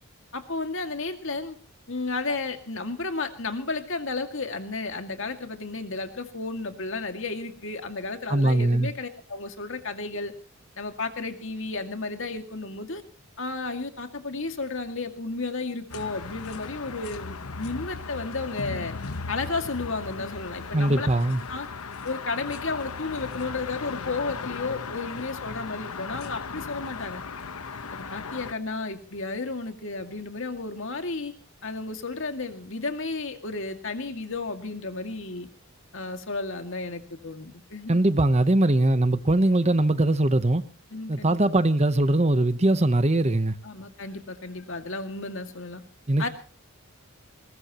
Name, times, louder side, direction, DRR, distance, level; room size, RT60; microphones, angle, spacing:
voice 1, 0.3-1.6 1.9-10.3 10.8-13.0 13.4-18.9 19.3-21.1 21.5-21.7 22.0-27.2 27.9-31.3 31.6-35.5 35.9-38.0 40.9-41.4 43.6-45.8 46.2-46.3, left 3 dB, 60° left, 2.2 m, -33 dB
voice 2, 8.3-8.9 20.7-21.4 37.9-40.6 41.1-43.6 46.1-46.3, right 1 dB, 30° right, 0.9 m, -21 dB
sound 1, 15.9-28.5, left 4 dB, 80° left, 1.1 m, -37 dB
21.0 x 19.5 x 3.0 m
head